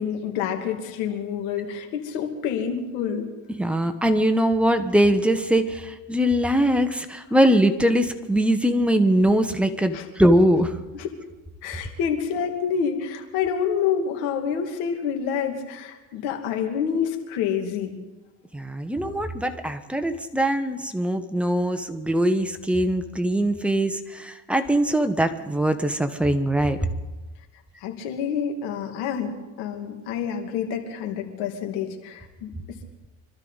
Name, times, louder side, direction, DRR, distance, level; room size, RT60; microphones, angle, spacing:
voice 1, 0.0-3.3 9.9-10.1 10.9-11.1 11.6-17.9 27.8-32.5, left 7 dB, 85° left, 4 dB, 2.4 m, -28 dB
voice 2, 3.6-10.8 18.5-26.9, right 1 dB, 5° right, 7 dB, 1.2 m, -22 dB
25.5 x 12.5 x 4.1 m, 1.1 s
supercardioid pair, 110°, 34 cm